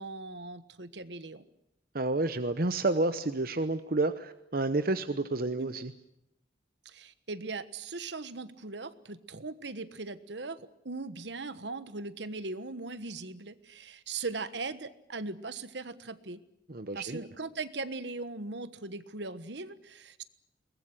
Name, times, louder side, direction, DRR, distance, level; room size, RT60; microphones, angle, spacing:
voice 1, 0.0-1.5 5.6-5.7 6.8-16.4 16.9-20.2, right 3 dB, 70° right, 13 dB, 1.4 m, -39 dB
voice 2, 1.9-5.9 16.7-17.3, right 2 dB, 50° right, 10 dB, 1.0 m, -30 dB
23.0 x 20.0 x 10.0 m, 0.80 s
head